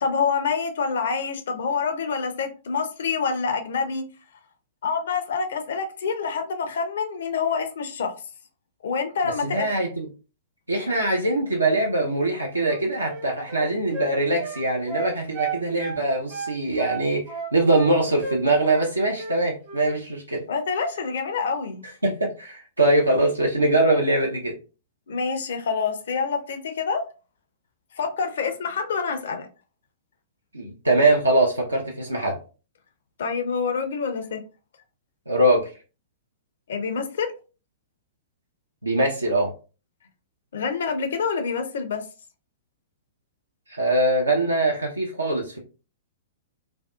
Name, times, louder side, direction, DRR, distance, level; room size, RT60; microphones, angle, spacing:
voice 1, 0.0-4.0 4.8-8.2 8.8-9.7 20.5-21.8 25.1-27.1 28.0-29.5 33.2-34.4 36.7-37.3 40.5-42.0, left 5 dB, 60° left, 0.5 m, -27 dB
voice 2, 9.4-10.1 10.7-17.2 17.5-20.4 22.0-24.5 30.5-32.4 35.3-35.7 38.8-39.5 43.7-45.6, right 2 dB, 85° right, 0.5 m, -22 dB
Wind instrument woodwind instrument, 12.5-16.0 16.3-17.9 18.2-18.4 18.7-19.4 19.6-19.9, right 4 dB, 45° right, 0.8 m, -33 dB
2.6 x 2.2 x 2.3 m
figure-of-eight pair, 105°, 0 cm